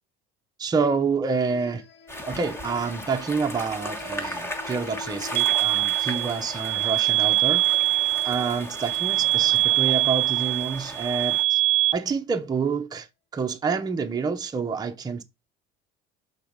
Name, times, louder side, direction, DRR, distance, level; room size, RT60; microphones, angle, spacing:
voice 1, 0.6-1.8 2.3-7.6 8.2-11.6 11.9-13.1 13.3-15.2, right 5 dB, 20° right, 0.7 m, -28 dB
sound 1, 1.5-12.0, left 7 dB, 55° left, 1.9 m, -47 dB
sound 2, 2.1-11.4, equal, 10° left, 1.3 m, -37 dB
sound 3, 5.4-11.9, right 16 dB, 70° right, 0.4 m, -23 dB
5.7 x 3.9 x 5.1 m
cardioid pair, 120°, 20 cm